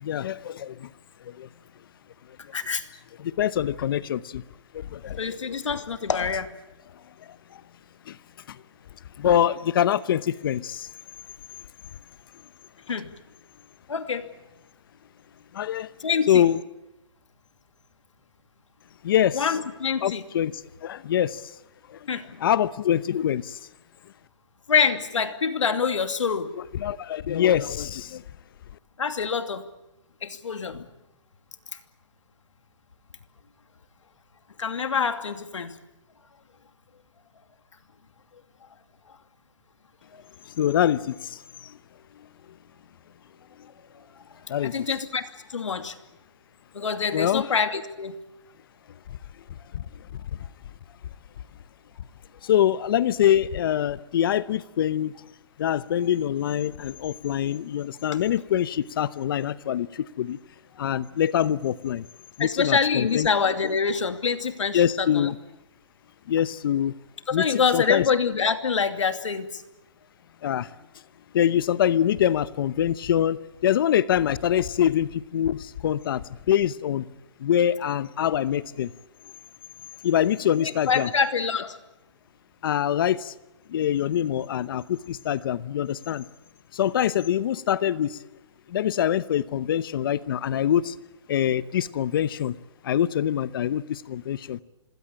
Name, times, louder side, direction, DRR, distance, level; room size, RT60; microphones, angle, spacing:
voice 1, 0.0-0.9 1.3-1.5 3.2-4.4 4.7-5.4 8.1-8.2 8.5-8.6 9.2-10.9 15.5-15.9 16.3-16.6 19.0-19.5 20.0-21.4 21.9-22.0 22.4-23.6 26.6-28.2 40.6-41.7 44.5-44.8 47.1-47.4 52.4-55.1 55.6-60.4 60.8-62.1 62.4-63.3 64.7-65.4 66.3-66.9 67.3-67.5 67.7-68.1 70.4-70.7 71.3-77.0 77.4-78.9 80.0-81.1 82.6-83.3 83.7-86.2 86.7-88.2 88.7-90.9 91.3-92.5 92.8-94.6, left 10 dB, 50° left, 17 dB, 0.9 m, -24 dB
voice 2, 2.5-2.8 5.2-6.5 12.9-13.1 13.9-14.3 16.0-16.5 19.3-20.2 22.1-22.4 24.7-26.5 29.0-29.7 30.2-30.8 34.6-35.7 40.1-40.2 44.6-46.0 46.7-48.2 62.4-65.3 67.3-69.6 80.6-81.8, left 6 dB, 90° left, 8 dB, 2.6 m, -26 dB
27.0 x 20.5 x 8.8 m, 0.95 s
hypercardioid pair, 155°, 15 cm